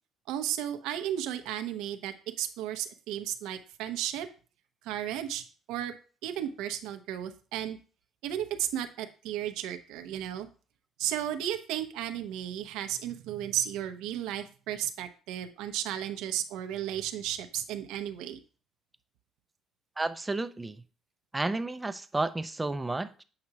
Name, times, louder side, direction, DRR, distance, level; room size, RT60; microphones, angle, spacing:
voice 1, 0.3-4.3 4.8-5.4 5.7-5.9 6.2-7.8 8.2-10.5 11.0-18.4, right 11 dB, 90° right, 0.7 m, -34 dB
voice 2, 20.0-20.8 21.3-23.2, right 2 dB, 10° right, 0.5 m, -31 dB
7.7 x 5.7 x 2.9 m
cardioid pair, 130°, 0 cm